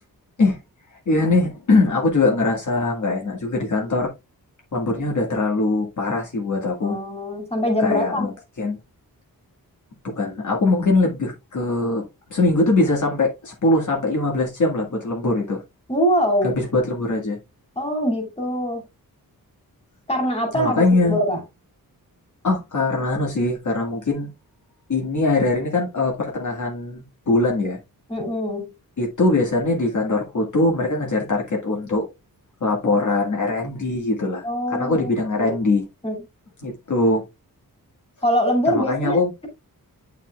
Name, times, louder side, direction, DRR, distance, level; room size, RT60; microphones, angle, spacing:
voice 1, 1.1-4.1 4.7-7.0 7.8-8.3 8.6-8.8 10.2-12.0 12.3-15.6 16.4-17.4 20.5-21.2 22.4-24.3 24.9-27.8 29.0-32.1 32.6-35.8 36.6-37.2 38.7-39.3, left 2 dB, 50° left, 1.8 m, -21 dB
voice 2, 6.8-8.3 15.9-16.6 17.8-18.9 20.1-21.4 28.1-28.7 34.4-35.5 36.0-36.2 38.2-39.2, equal, 15° left, 2.6 m, -23 dB
9.4 x 5.7 x 2.3 m
wide cardioid pair, 180°, 37 cm